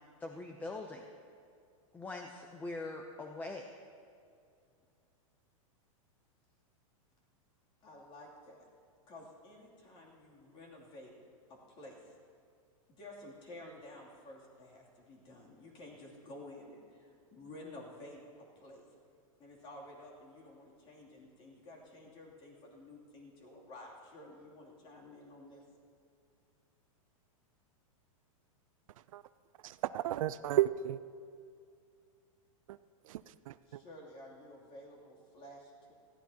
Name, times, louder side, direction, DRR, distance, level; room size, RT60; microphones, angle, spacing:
voice 1, 0.2-1.0 1.9-3.7, left 2 dB, 10° left, 3 dB, 0.6 m, -42 dB
voice 2, 7.8-8.7 9.1-11.1 11.5-12.1 12.9-18.8 19.4-25.6 33.7-35.9, left 1 dB, 30° left, -2 dB, 2.8 m, -52 dB
voice 3, 29.6-31.0 32.7-32.8 33.1-33.8, right 13 dB, 70° right, 14 dB, 0.5 m, -33 dB
20.0 x 15.0 x 2.9 m, 2.4 s
supercardioid pair, 150°, 18 cm